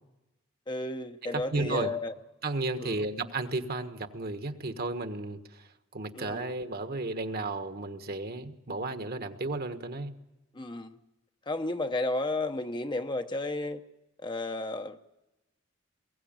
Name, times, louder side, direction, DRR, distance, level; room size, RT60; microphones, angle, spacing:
voice 1, 0.7-2.1 2.8-3.0 6.1-6.6 10.5-11.0 11.5-13.8 14.2-15.0, left 2 dB, 25° left, 7 dB, 0.8 m, -33 dB
voice 2, 1.3-1.9 2.4-5.7 5.9-10.1, right 2 dB, 50° right, 8 dB, 1.4 m, -33 dB
22.0 x 16.5 x 8.9 m, 0.98 s
head